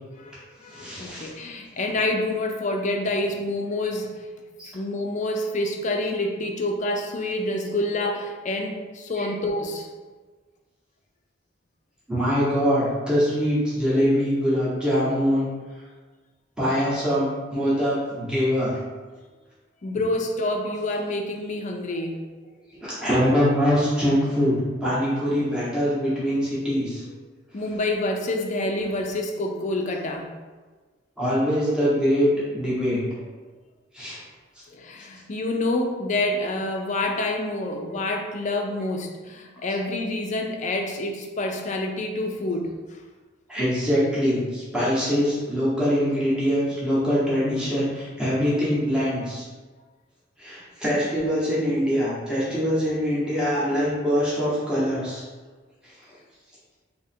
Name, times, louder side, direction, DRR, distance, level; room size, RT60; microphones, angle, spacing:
voice 1, 0.1-4.3 4.7-9.9 19.8-22.2 27.5-30.3 34.7-42.7, left 2 dB, 40° left, 2 dB, 0.4 m, -27 dB
voice 2, 0.7-1.3 4.6-4.7 9.2-9.3 12.1-15.5 16.6-18.7 22.8-27.0 31.2-33.0 33.9-34.2 43.5-49.4 50.4-55.2, equal, 5° right, -10 dB, 1.0 m, -23 dB
2.8 x 2.4 x 4.2 m, 1.3 s
head